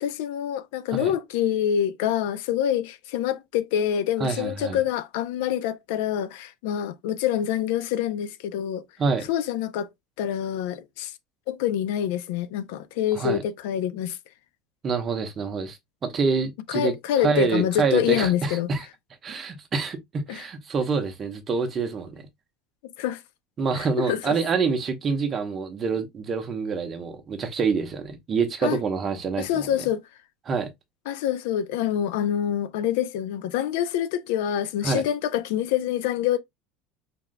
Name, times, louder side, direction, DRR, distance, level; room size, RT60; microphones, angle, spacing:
voice 1, 0.0-8.8 9.3-9.9 10.2-11.1 11.5-14.2 16.7-18.7 20.3-20.4 23.0-23.2 23.7-24.4 28.6-28.8 29.4-30.0 31.1-36.4, left 10 dB, 80° left, 0.6 m, -26 dB
voice 2, 4.2-4.8 9.0-9.3 13.2-13.4 14.8-16.9 17.2-18.9 19.2-22.3 23.6-29.7 30.5-30.7 34.8-35.0, right 5 dB, 25° right, 1.0 m, -26 dB
5.8 x 3.7 x 2.2 m
cardioid pair, 165°, 0 cm